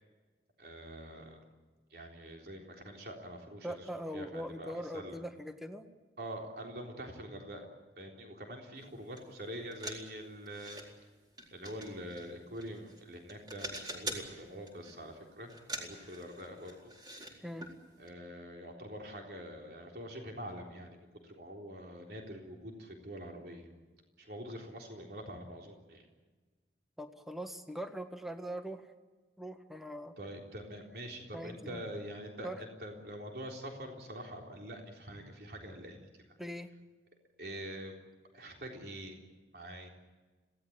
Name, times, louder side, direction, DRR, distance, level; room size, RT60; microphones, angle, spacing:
voice 1, 0.6-1.4 1.9-3.7 4.1-5.2 6.2-7.7 8.0-10.8 11.5-16.9 18.0-23.7 24.2-26.0 30.2-36.1 37.4-38.0 38.3-39.2 39.5-39.9, equal, 60° right, 1 dB, 3.8 m, -45 dB
voice 2, 3.6-5.9 17.4-17.7 27.0-28.9 29.4-30.2 31.3-31.8 32.4-32.6 36.4-36.7, equal, ahead, 6 dB, 1.5 m, -41 dB
sound 1, 9.2-9.3 9.5-10.9 11.4-13.0 13.3-14.3 14.7-15.0 15.5-17.3 17.6-17.7 18.1-18.2, right 1 dB, 25° right, 4.2 m, -44 dB
26.5 x 17.5 x 8.8 m, 1.3 s
head